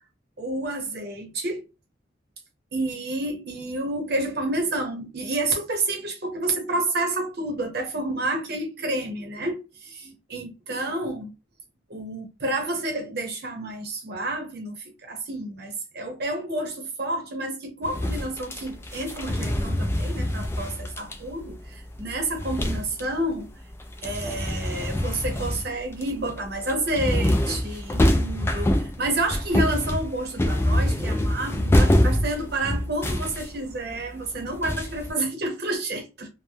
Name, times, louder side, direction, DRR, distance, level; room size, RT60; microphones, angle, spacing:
voice 1, 0.4-1.6 2.7-11.3 11.9-23.5 24.0-36.3, right 2 dB, 60° right, 0.9 m, -29 dB
sound 1, 17.8-23.3 23.6-35.1, left 1 dB, 15° left, 0.3 m, -26 dB
2.1 x 2.1 x 3.1 m
head